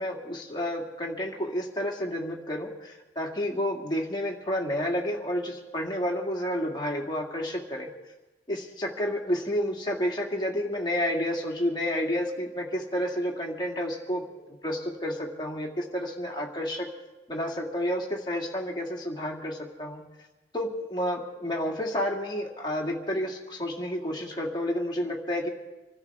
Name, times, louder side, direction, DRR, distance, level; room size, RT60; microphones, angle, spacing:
voice 1, 0.0-7.9 8.5-16.9 17.3-20.0 20.5-25.5, equal, 25° left, -1 dB, 2.3 m, -30 dB
26.5 x 13.5 x 3.6 m, 1.1 s
head